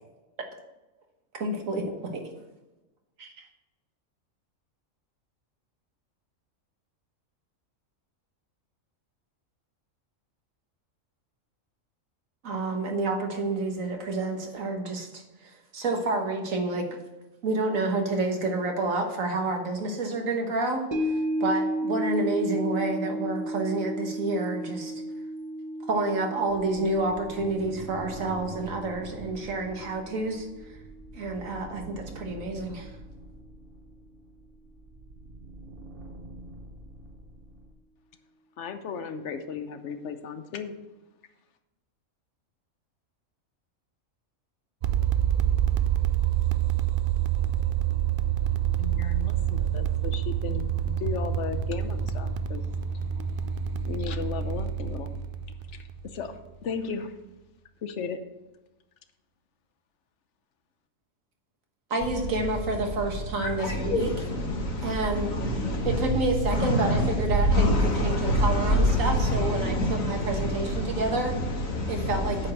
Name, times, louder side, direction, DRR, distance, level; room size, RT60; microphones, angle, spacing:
voice 1, 1.3-1.9 3.2-3.5 12.4-16.9 17.4-21.1 21.4-25.0 25.9-30.7 31.1-32.9 61.9-64.1 64.8-65.3 65.8-67.7 68.0-69.8 70.1-71.3 71.9-72.5, right 2 dB, 85° right, 1.7 m, -29 dB
sound 1, 20.9-31.3 31.6-31.7, equal, 20° right, 1.1 m, -33 dB
sound 2, 26.5-37.7, right 2 dB, 45° right, 1.1 m, -45 dB
voice 2, 38.6-40.7 48.8-52.6 53.9-55.1 55.7-57.1 57.8-58.2, left 6 dB, 65° left, 1.0 m, -35 dB
sound 3, 44.8-56.5, right 10 dB, 60° right, 0.5 m, -27 dB
voice 3, 62.0-72.5, equal, 85° left, 2.0 m, -26 dB
8.6 x 5.0 x 7.2 m
omnidirectional pair, 1.4 m